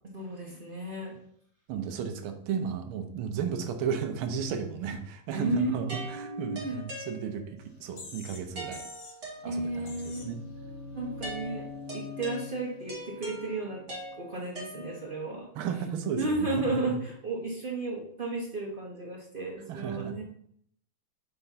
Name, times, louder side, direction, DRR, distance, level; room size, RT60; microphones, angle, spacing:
voice 1, 0.1-1.1 5.3-5.7 6.1-6.8 9.4-10.2 10.9-13.8 14.2-15.5 16.2-20.2, right 2 dB, 50° right, -2 dB, 0.6 m, -33 dB
voice 2, 1.7-8.8 9.4-10.5 15.5-17.0 19.7-20.1, right 7 dB, 80° right, 7 dB, 1.6 m, -34 dB
sound 1, 5.9-7.7 8.6-10.0 11.2-15.3, right 1 dB, 35° right, 1.9 m, -43 dB
sound 2, 7.6-7.7 8.0-8.5 8.7-9.2 9.9-10.3, left 4 dB, 55° left, 0.7 m, -46 dB
sound 3, 9.3-15.2, left 4 dB, 80° left, 1.9 m, -45 dB
5.4 x 3.5 x 5.6 m, 0.68 s
omnidirectional pair, 2.3 m